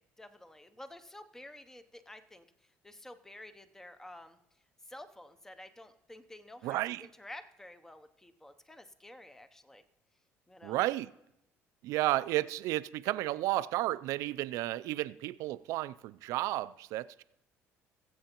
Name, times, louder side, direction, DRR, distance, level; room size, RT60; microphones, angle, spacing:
voice 1, 0.0-2.5 2.8-4.4 4.9-9.8 10.5-10.8 12.0-12.1, left 1 dB, 10° left, 0.6 m, -51 dB
voice 2, 6.6-7.1 10.6-11.1 11.8-17.2, right 16 dB, 80° right, 0.3 m, -32 dB
20.0 x 7.8 x 2.9 m
cardioid pair, 110°, 5 cm